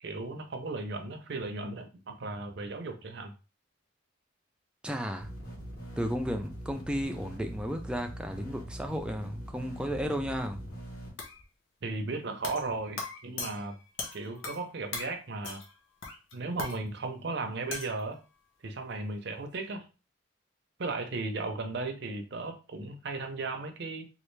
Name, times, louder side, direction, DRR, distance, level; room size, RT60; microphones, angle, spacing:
voice 1, 0.0-3.3 11.8-13.8 14.1-15.6 16.3-18.2 18.6-19.9 20.8-24.1, right 3 dB, 60° right, 0.6 m, -36 dB
voice 2, 4.8-5.3 6.0-10.7, equal, 5° right, 0.3 m, -33 dB
sound 1, 5.2-11.1, right 1 dB, 55° left, 1.6 m, -42 dB
sound 2, 11.2-11.4 12.4-12.7 13.0-14.7 14.9-15.2 15.4-15.8 16.0-16.8 17.7-18.0, left 4 dB, 75° left, 0.7 m, -39 dB
3.2 x 2.4 x 3.1 m
head